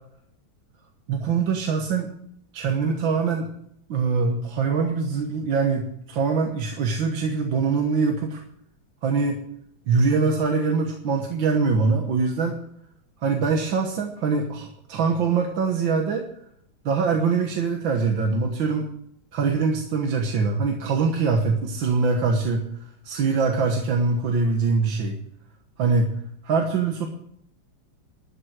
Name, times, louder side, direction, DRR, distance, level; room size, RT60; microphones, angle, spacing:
voice 1, 1.1-2.1 2.5-3.5 3.9-8.4 9.0-9.4 9.9-12.6 13.2-16.2 16.9-18.9 19.3-25.2 25.8-27.1, right 4 dB, 70° right, 2 dB, 2.0 m, -23 dB
12.5 x 7.8 x 7.9 m, 0.71 s
omnidirectional pair, 2.2 m